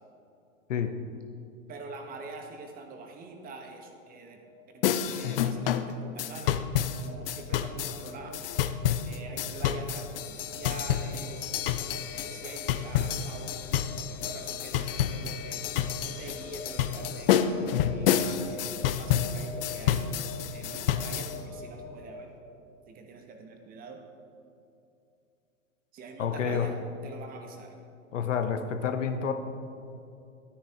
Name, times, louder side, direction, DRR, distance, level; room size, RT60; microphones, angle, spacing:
voice 1, 1.7-4.4 4.7-8.5 9.0-11.6 12.0-13.6 14.1-15.6 16.0-22.3 22.9-24.0 25.9-26.8 27.0-27.7, right 3 dB, 20° right, 3 dB, 1.0 m, -45 dB
sound 1, 4.3-22.0, left 4 dB, ahead, 2.2 m, -46 dB
sound 2, 4.8-21.4, left 9 dB, 45° left, 0.5 m, -29 dB
voice 2, 26.2-26.7 28.1-29.3, left 7 dB, 65° left, 8 dB, 0.9 m, -29 dB
12.0 x 9.8 x 2.8 m, 2.6 s
hypercardioid pair, 115°, 40 cm